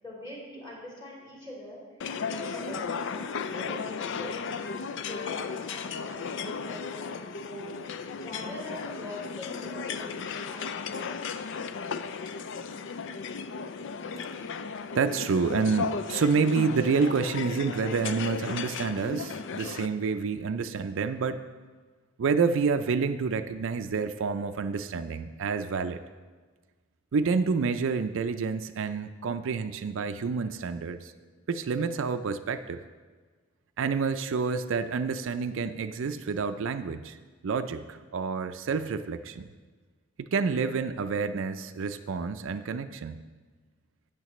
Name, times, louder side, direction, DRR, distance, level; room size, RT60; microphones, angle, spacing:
voice 1, 0.0-7.7 8.2-11.2, left 1 dB, 25° left, -6 dB, 3.4 m, -43 dB
sound 1, 2.0-19.9, left 5 dB, 65° left, 0.4 m, -35 dB
voice 2, 14.9-21.4 22.2-26.0 27.1-31.1 31.5-32.8 33.8-37.2 37.4-39.5 40.2-43.2, right 5 dB, 65° right, 9 dB, 0.4 m, -28 dB
12.0 x 8.9 x 3.1 m, 1.4 s
head